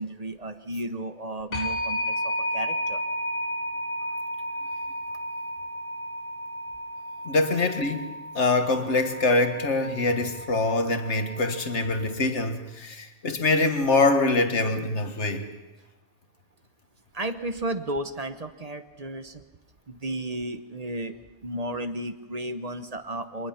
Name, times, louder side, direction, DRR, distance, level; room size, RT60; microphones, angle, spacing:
voice 1, 0.0-3.0 17.1-19.4 19.9-21.2 21.4-23.5, right 1 dB, 35° right, 1.0 m, -33 dB
sound 1, 1.5-12.1, equal, 50° left, 1.4 m, -33 dB
voice 2, 7.3-8.1 8.4-15.4, left 2 dB, 75° left, 1.9 m, -24 dB
24.0 x 19.5 x 5.8 m
omnidirectional pair, 1.2 m